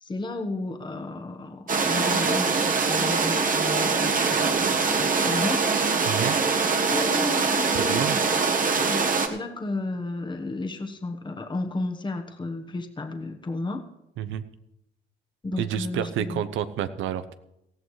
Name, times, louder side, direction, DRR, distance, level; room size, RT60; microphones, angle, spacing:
voice 1, 0.0-5.6 6.9-8.1 8.7-13.9 15.4-16.4, left 2 dB, 25° left, 4 dB, 1.2 m, -33 dB
sound 1, 1.7-9.3, right 4 dB, 45° right, 1.4 m, -23 dB
voice 2, 6.0-6.4 7.7-8.2 14.2-14.5 15.6-17.3, right 10 dB, 85° right, 13 dB, 0.8 m, -29 dB
18.5 x 14.0 x 3.2 m, 0.87 s
cardioid pair, 90°, 20 cm